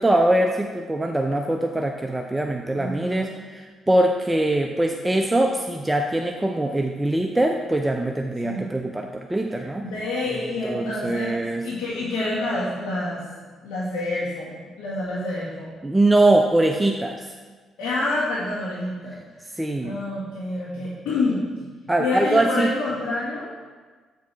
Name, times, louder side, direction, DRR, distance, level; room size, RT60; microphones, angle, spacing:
voice 1, 0.0-9.8 10.3-10.4 10.6-11.6 15.8-17.3 19.6-20.0 21.9-22.7, right 1 dB, 10° right, 3 dB, 0.5 m, -22 dB
voice 2, 2.7-3.3 8.4-8.7 9.8-13.2 13.6-15.7 17.8-19.2 19.8-21.7 22.0-23.5, left 2 dB, 85° left, -9 dB, 1.7 m, -28 dB
8.4 x 4.7 x 4.6 m, 1.4 s
cardioid pair, 80°, 0 cm